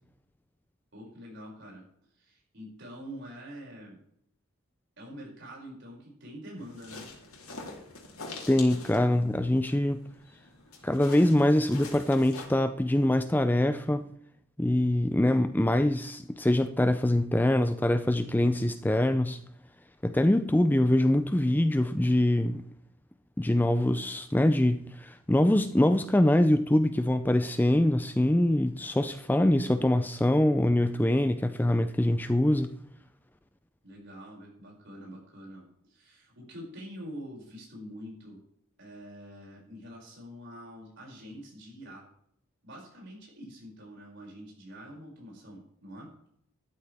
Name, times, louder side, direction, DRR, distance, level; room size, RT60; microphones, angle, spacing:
voice 1, 0.9-1.9 2.1-4.0 5.0-7.1 33.8-38.4 38.8-42.1 42.6-46.1, equal, 55° right, 6.1 m, -45 dB
sound 1, 6.6-12.5, left 3 dB, 80° left, 3.4 m, -45 dB
voice 2, 8.5-10.0 10.8-14.1 14.6-19.4 20.0-22.6 23.4-32.7, left 1 dB, 10° left, 0.4 m, -24 dB
13.0 x 12.5 x 3.5 m
head